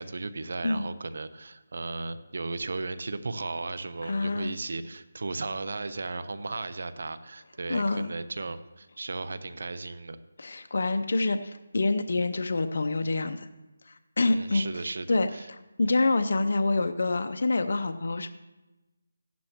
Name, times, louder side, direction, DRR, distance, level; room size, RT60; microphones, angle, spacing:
voice 1, 0.0-10.2 14.2-15.5, right 3 dB, 65° right, 13 dB, 0.9 m, -35 dB
voice 2, 4.0-4.5 7.7-8.1 10.4-13.5 13.9-14.7 15.1-18.3, left 2 dB, 65° left, 9 dB, 0.7 m, -27 dB
15.0 x 11.5 x 3.0 m, 1.1 s
figure-of-eight pair, 160°, 0 cm